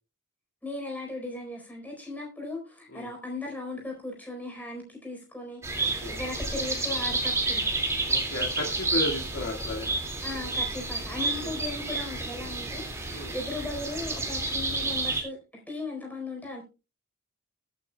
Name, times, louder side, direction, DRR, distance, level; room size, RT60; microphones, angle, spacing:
voice 1, 0.6-7.6 10.2-15.4 15.7-16.6, left 2 dB, 5° left, 4.2 m, -37 dB
sound 1, 5.6-15.2, right 3 dB, 10° right, 2.2 m, -30 dB
voice 2, 5.8-6.1 8.1-10.0 13.1-13.3, left 2 dB, 80° left, 2.1 m, -34 dB
21.5 x 9.1 x 2.3 m
head